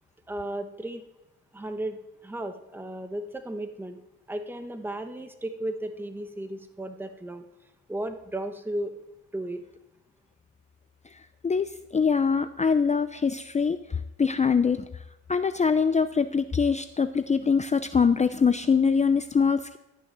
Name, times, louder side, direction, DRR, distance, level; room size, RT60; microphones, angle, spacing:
voice 1, 0.3-1.0 1.5-4.0 4.3-7.5 7.9-8.9 9.3-9.6, right 1 dB, 5° right, 7 dB, 1.2 m, -34 dB
voice 2, 11.4-13.8 14.2-14.9 15.3-19.8, left 5 dB, 25° left, 11 dB, 0.6 m, -23 dB
13.5 x 6.4 x 9.2 m, 0.92 s
cardioid pair, 90°, 30 cm